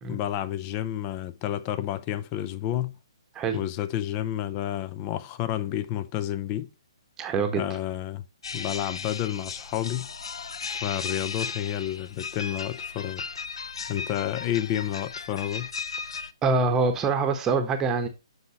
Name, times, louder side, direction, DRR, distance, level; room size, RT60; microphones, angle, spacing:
voice 1, 0.1-3.0 3.5-6.7 7.6-8.2 8.5-10.1 10.7-13.3 13.6-15.7, left 12 dB, 30° left, 0.6 m, -30 dB
voice 2, 7.2-7.6 16.4-18.1, right 4 dB, 15° right, 1.1 m, -24 dB
sound 1, 8.4-16.3, left 5 dB, 70° left, 0.6 m, -36 dB
8.0 x 5.8 x 3.0 m
figure-of-eight pair, 135°, 3 cm